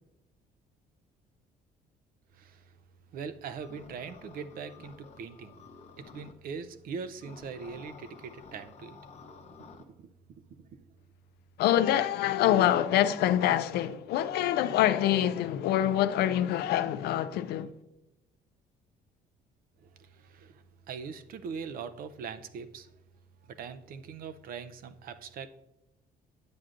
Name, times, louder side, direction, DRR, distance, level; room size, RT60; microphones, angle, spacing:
voice 1, 2.3-2.8 3.1-5.6 6.0-10.8 19.8-22.9 23.4-25.5, right 6 dB, 60° right, 0.5 m, -42 dB
sound 1, 3.6-6.3 7.2-9.8, left 5 dB, 40° left, 0.8 m, -51 dB
voice 2, 11.6-17.7, left 12 dB, 70° left, 0.4 m, -25 dB
9.5 x 7.5 x 2.5 m
cardioid pair, 110°, 17 cm